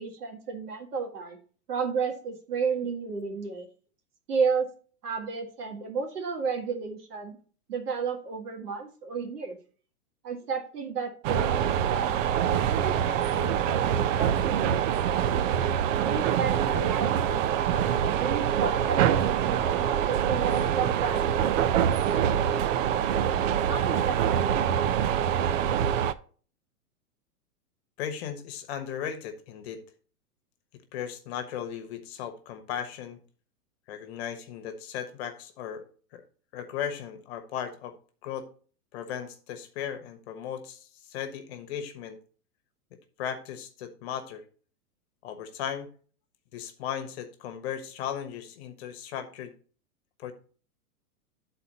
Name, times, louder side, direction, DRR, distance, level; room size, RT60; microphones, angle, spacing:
voice 1, 0.0-1.4 1.7-3.7 4.3-4.7 5.0-7.4 7.7-9.6 10.2-15.2 16.0-21.5 23.6-24.8, right 5 dB, 85° right, 4 dB, 1.9 m, -33 dB
sound 1, 11.2-26.1, right 9 dB, 55° right, 0.6 m, -25 dB
voice 2, 28.0-29.8 30.9-33.2 33.9-35.8 36.1-36.2 36.5-38.0 38.2-38.5 38.9-42.2 43.2-44.4 45.2-45.9 46.5-49.5 50.2-50.3, left 9 dB, 45° left, 8 dB, 1.2 m, -36 dB
11.5 x 4.2 x 4.0 m, 0.42 s
hypercardioid pair, 145°, 45 cm